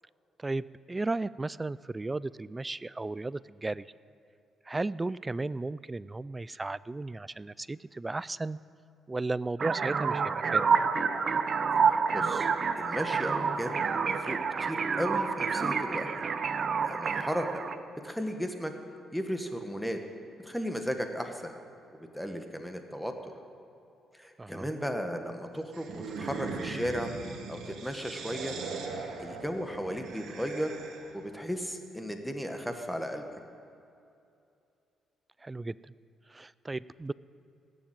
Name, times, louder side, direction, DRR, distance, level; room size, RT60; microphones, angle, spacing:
voice 1, 0.4-3.9 4.7-8.6 9.1-10.7 24.4-24.7 35.4-35.9 36.3-37.1, right 2 dB, 20° right, 19 dB, 0.3 m, -35 dB
sound 1, 9.6-17.8, right 5 dB, 45° right, 0.7 m, -28 dB
voice 2, 11.8-12.5 12.8-13.8 14.1-16.2 16.8-17.6 18.0-18.7 19.1-20.0 20.4-21.5 22.0-23.3 24.2-27.1 27.5-28.6 29.2-30.7 31.1-33.4, equal, ahead, 5 dB, 1.4 m, -35 dB
sound 2, 25.7-31.2, right 4 dB, 75° right, 1.6 m, -40 dB
17.5 x 7.2 x 9.0 m, 2.6 s
cardioid pair, 90°, 0 cm